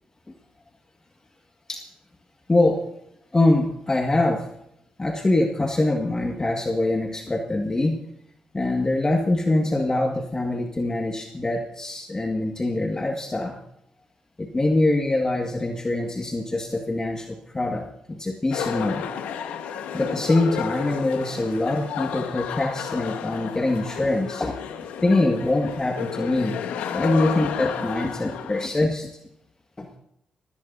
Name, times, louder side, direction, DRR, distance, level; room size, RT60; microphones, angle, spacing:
voice 1, 3.3-4.4 5.0-8.0 8.5-13.6 14.4-19.1 19.9-24.6 25.0-26.6 26.9-29.1 29.8-29.9, left 2 dB, 25° left, 2 dB, 1.8 m, -24 dB
sound 1, 18.5-28.7, left 8 dB, 85° left, 1.4 m, -32 dB
22.0 x 16.0 x 2.7 m, 0.77 s
supercardioid pair, 55°, 2 cm